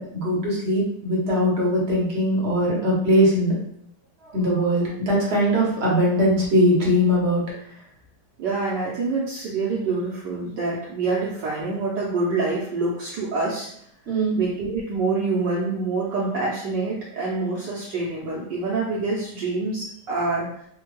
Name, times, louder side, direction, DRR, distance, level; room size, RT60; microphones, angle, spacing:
voice 1, 0.0-3.5 4.3-7.4 14.1-14.4, equal, 45° right, -5 dB, 0.9 m, -21 dB
voice 2, 8.4-13.9 14.4-20.7, right 3 dB, 65° right, -5 dB, 1.2 m, -26 dB
4.2 x 2.2 x 3.1 m, 0.68 s
omnidirectional pair, 2.4 m